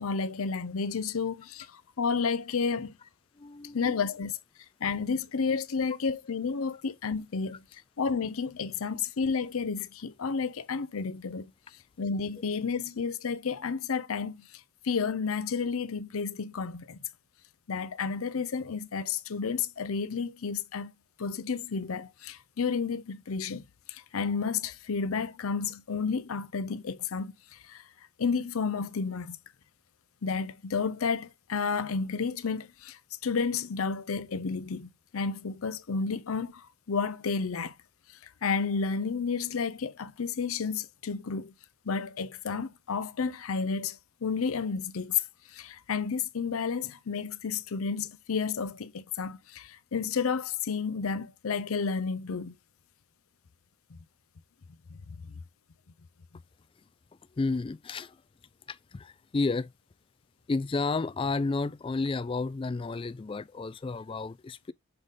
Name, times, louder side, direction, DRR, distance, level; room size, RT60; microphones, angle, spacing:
voice 1, 0.0-2.9 3.7-4.3 4.8-7.6 8.0-11.5 12.0-14.5 14.8-17.0 17.7-20.9 21.2-23.6 23.9-27.8 28.2-29.4 30.2-37.7 38.4-41.5 41.9-45.2 45.5-52.5 55.1-55.2, left 5 dB, 85° left, 0.6 m, -31 dB
voice 2, 3.4-3.9 57.4-58.2 58.7-59.7 60.5-64.7, left 3 dB, 25° left, 0.3 m, -31 dB
6.6 x 4.1 x 3.7 m
head